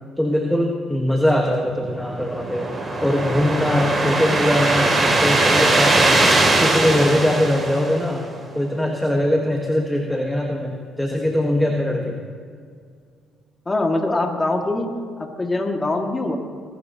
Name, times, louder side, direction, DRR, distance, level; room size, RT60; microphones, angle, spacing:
voice 1, 0.2-2.7 3.0-6.3 6.6-8.2 8.5-12.2, left 1 dB, 5° left, 1 dB, 1.6 m, -21 dB
sound 1, 1.9-8.4, right 2 dB, 30° right, 3.1 m, -20 dB
voice 2, 13.7-14.9 15.2-16.4, left 2 dB, 25° left, 2 dB, 2.2 m, -23 dB
21.5 x 12.0 x 3.0 m, 2.1 s
hypercardioid pair, 55°, 0 cm